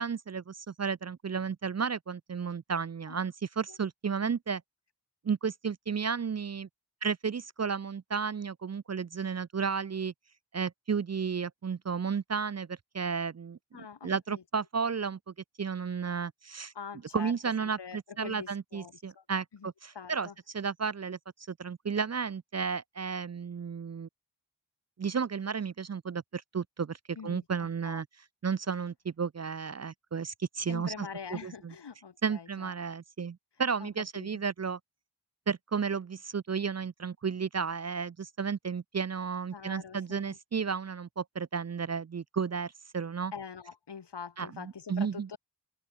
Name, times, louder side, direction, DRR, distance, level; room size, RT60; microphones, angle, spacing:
voice 1, 0.0-4.6 5.2-6.7 7.0-10.1 10.5-15.2 15.6-16.7 17.1-20.3 20.5-21.2 21.5-24.1 25.0-28.1 28.4-31.7 32.2-34.8 35.5-43.3 44.4-45.3, right 6 dB, 40° right, 0.4 m, -33 dB
voice 2, 13.7-14.4 16.7-17.3 17.6-19.2 19.5-20.3 27.2-28.0 30.7-32.7 33.8-34.3 39.5-40.4 43.3-45.4, left 6 dB, 70° left, 1.0 m, -44 dB
open air
wide cardioid pair, 40°, 43 cm